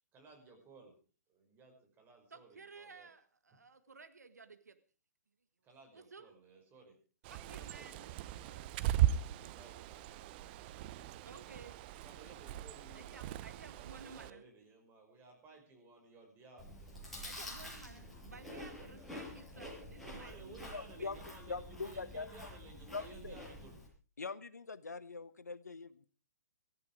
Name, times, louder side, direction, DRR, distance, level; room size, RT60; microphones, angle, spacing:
voice 1, 0.1-0.9 1.3-3.1 5.6-7.0 7.2-8.6 8.9-11.1 12.0-13.3 13.5-17.1 18.1-19.1 20.0-23.7, right 3 dB, 20° right, 2 dB, 5.9 m, -58 dB
voice 2, 2.3-4.8 5.9-6.4 7.3-8.2 11.2-11.8 12.9-14.4 17.2-21.1, right 4 dB, 80° right, 10 dB, 1.6 m, -55 dB
Bird, 7.2-14.3, right 12 dB, 35° right, 0.8 m, -37 dB
Chewing mastication, 16.6-23.9, left 1 dB, ahead, 6.8 m, -48 dB
voice 3, 20.7-22.5 22.9-23.4 24.2-26.1, left 4 dB, 80° left, 16 dB, 1.2 m, -43 dB
18.5 x 14.5 x 4.8 m, 0.36 s
figure-of-eight pair, 125°, 9 cm